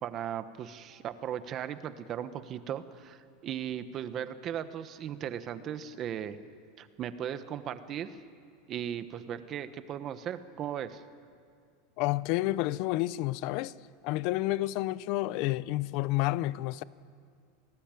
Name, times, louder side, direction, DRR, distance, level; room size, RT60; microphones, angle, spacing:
voice 1, 0.0-6.4 6.8-8.2 8.7-11.0, right 9 dB, 30° right, 1.2 m, -37 dB
voice 2, 12.0-13.7 14.0-16.8, left 17 dB, 45° left, 0.6 m, -30 dB
28.0 x 18.5 x 9.2 m
supercardioid pair, 160°, 0 cm